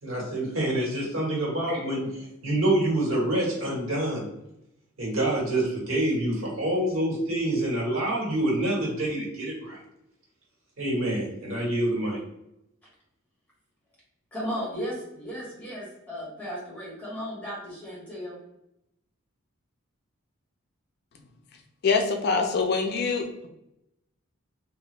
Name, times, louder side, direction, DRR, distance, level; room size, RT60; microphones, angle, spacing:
voice 1, 0.0-2.1 2.4-4.3 5.0-9.8 10.8-12.2, right 1 dB, 80° right, -4 dB, 1.4 m, -26 dB
voice 2, 14.3-18.4, equal, 10° left, -7 dB, 1.5 m, -35 dB
voice 3, 21.8-23.5, left 4 dB, 50° left, 5 dB, 0.4 m, -25 dB
2.8 x 2.5 x 3.1 m, 0.82 s
head